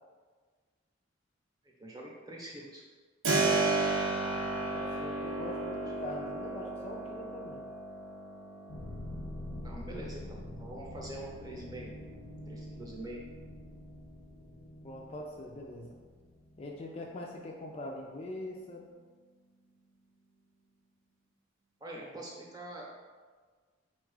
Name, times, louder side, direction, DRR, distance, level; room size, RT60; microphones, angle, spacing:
voice 1, 1.8-2.8 9.6-11.9 12.5-13.2 21.8-22.9, right 1 dB, 20° right, -2 dB, 0.7 m, -44 dB
Keyboard (musical), 3.2-13.9, right 3 dB, 85° right, 0.7 m, -35 dB
voice 2, 4.7-7.6 14.8-16.0 16.6-18.9, left 1 dB, 30° left, -1 dB, 0.3 m, -43 dB
sound 1, 8.7-17.5, left 1 dB, 85° left, 0.6 m, -46 dB
4.3 x 2.4 x 4.7 m, 1.5 s
head